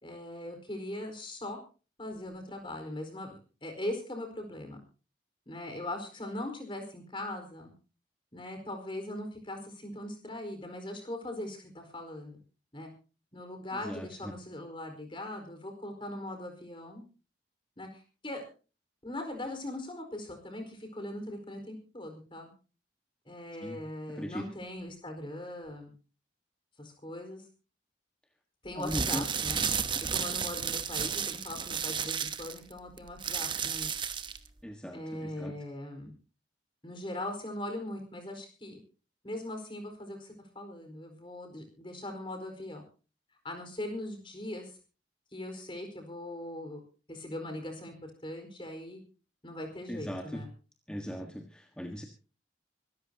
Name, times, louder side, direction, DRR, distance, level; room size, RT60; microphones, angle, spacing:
voice 1, 0.0-1.6 2.0-4.8 5.5-7.7 8.3-12.4 12.7-12.9 13.3-17.0 17.8-18.4 19.0-22.5 23.2-25.9 26.8-27.4 28.6-29.6 30.1-33.9 34.9-36.1 36.8-38.8 39.2-42.8 43.4-44.7 45.3-46.8 47.1-47.9 48.2-49.0 49.4-50.5, left 1 dB, 30° left, 6 dB, 4.7 m, -40 dB
voice 2, 13.9-14.4 23.6-23.8 24.1-24.4 28.8-29.3 34.6-35.5 49.9-50.4 50.9-52.0, equal, 5° left, 3 dB, 1.6 m, -38 dB
sound 1, 28.7-34.5, right 7 dB, 25° right, 1.0 m, -32 dB
25.5 x 13.5 x 2.9 m, 0.35 s
head